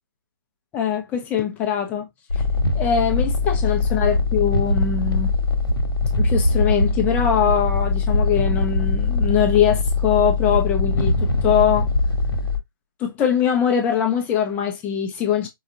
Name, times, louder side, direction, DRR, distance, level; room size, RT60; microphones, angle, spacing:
voice 1, 0.7-2.1 2.3-2.4 2.7-5.3 6.2-11.9 13.0-15.5, left 8 dB, 15° left, 0.7 m, -22 dB
sound 1, 2.3-12.6, left 3 dB, 85° left, 1.0 m, -21 dB
4.8 x 2.3 x 2.8 m
figure-of-eight pair, 145°, 12 cm